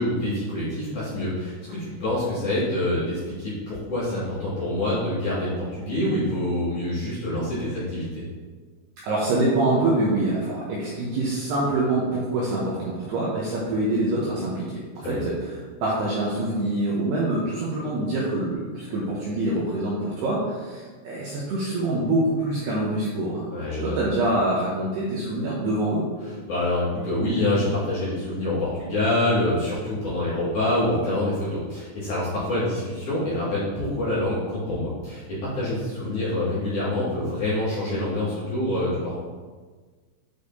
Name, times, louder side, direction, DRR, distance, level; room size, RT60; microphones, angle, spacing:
voice 1, 0.0-8.2 15.0-15.2 23.5-23.9 26.2-39.2, left 1 dB, 50° left, -12 dB, 2.7 m, -26 dB
voice 2, 9.0-23.5 23.8-26.1, right 2 dB, 80° right, -6 dB, 2.4 m, -25 dB
8.9 x 4.9 x 2.7 m, 1.4 s
omnidirectional pair, 5.7 m